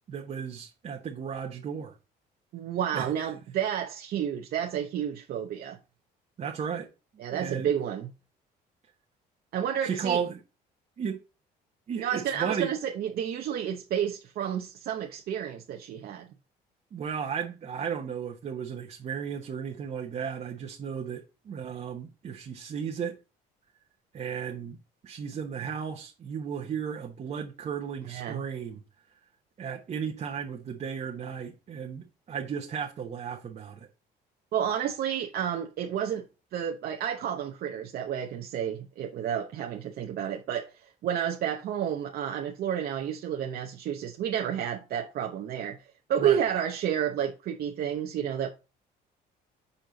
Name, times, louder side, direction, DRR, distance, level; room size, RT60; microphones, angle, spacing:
voice 1, 0.1-1.9 2.9-3.1 6.4-6.9 7.1-7.7 9.8-10.4 11.0-11.2 11.9-12.7 16.9-23.2 24.1-24.8 25.0-28.8 29.6-33.9 46.2-46.4, right 7 dB, 45° right, 1.1 m, -34 dB
voice 2, 2.5-5.8 7.2-8.1 9.5-10.2 12.0-16.3 28.1-28.4 34.5-36.2 36.5-40.7 41.0-45.8 46.1-48.5, right 9 dB, 65° right, 0.9 m, -30 dB
6.7 x 4.4 x 3.9 m
cardioid pair, 110°, 17 cm